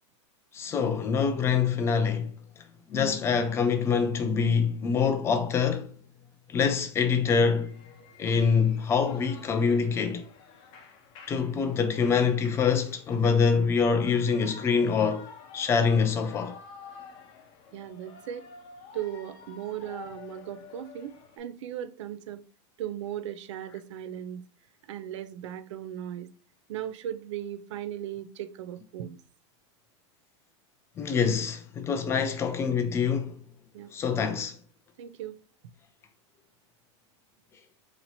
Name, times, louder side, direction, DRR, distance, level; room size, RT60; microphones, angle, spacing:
voice 1, 0.5-2.3 2.9-5.9 6.5-7.7 8.2-10.2 11.3-15.3 15.5-16.6 31.0-33.4 33.9-34.6, left 6 dB, 15° left, 0.3 m, -25 dB
Shout / Cheering, 7.5-21.4, left 5 dB, 35° left, 0.7 m, -50 dB
voice 2, 17.7-18.5 18.9-22.4 22.8-24.4 24.8-26.3 26.7-29.2 33.7-33.9 35.0-35.4, right 11 dB, 80° right, 0.5 m, -37 dB
2.9 x 2.8 x 4.0 m
supercardioid pair, 155°, 15 cm